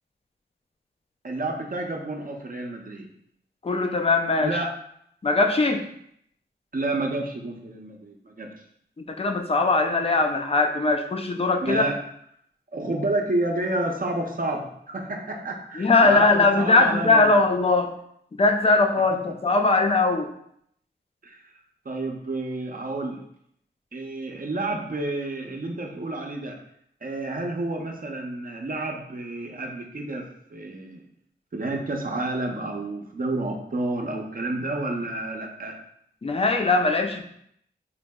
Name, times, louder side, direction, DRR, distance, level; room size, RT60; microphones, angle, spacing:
voice 1, 1.2-3.1 4.4-4.7 6.7-8.5 11.6-12.0 12.7-17.3 21.2-21.4 21.9-23.3 23.9-26.6 27.0-31.0 31.5-35.7, right 2 dB, 50° right, 1 dB, 0.6 m, -30 dB
voice 2, 3.6-4.6 5.2-5.8 9.1-11.8 15.8-17.9 18.4-20.3 36.2-37.2, left 3 dB, 30° left, 5 dB, 0.4 m, -20 dB
3.9 x 2.6 x 2.2 m, 0.71 s
wide cardioid pair, 55°, 19 cm